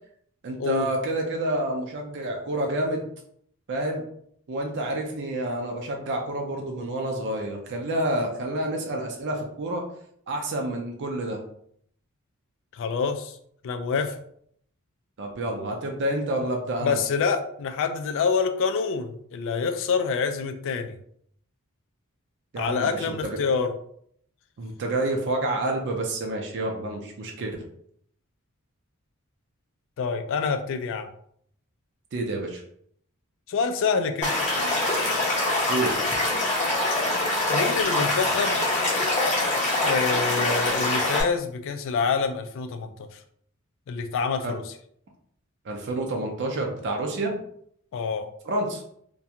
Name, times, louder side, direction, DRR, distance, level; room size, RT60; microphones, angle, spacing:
voice 1, 0.4-3.0 3.7-4.0 4.5-9.8 10.3-11.4 15.2-17.0 22.5-23.4 24.6-27.6 32.1-32.6 35.7-36.0 44.4-44.6 45.7-47.4 48.4-48.8, right 1 dB, 55° right, 2 dB, 0.4 m, -28 dB
voice 2, 12.7-13.3 13.6-14.2 16.8-21.0 22.6-23.7 30.0-31.1 33.5-34.3 37.5-38.6 39.8-43.1 43.9-44.6 47.9-48.3, left 5 dB, 60° left, 8 dB, 0.3 m, -26 dB
Stream / Liquid, 34.2-41.2, left 2 dB, 35° left, 0.8 m, -24 dB
2.4 x 2.2 x 2.8 m, 0.66 s
head